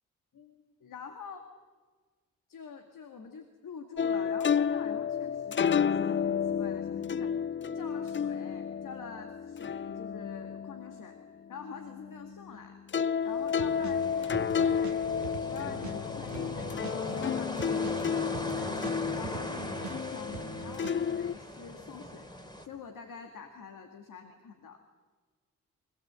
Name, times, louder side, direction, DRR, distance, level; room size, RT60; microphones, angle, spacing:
voice 1, 0.3-1.5 2.5-7.3 7.7-11.2 11.5-12.8 13.2-22.3 22.6-24.8, left 6 dB, 65° left, 5 dB, 2.3 m, -46 dB
sound 1, 4.0-12.6 12.9-21.3, left 7 dB, 35° left, 0.6 m, -31 dB
sound 2, 13.3-22.7, left 1 dB, 15° left, 3.4 m, -40 dB
sound 3, 13.6-16.0 16.3-20.0 20.3-20.9, right 9 dB, 55° right, 1.0 m, -44 dB
24.5 x 17.0 x 8.3 m, 1.4 s
supercardioid pair, 45°, 34 cm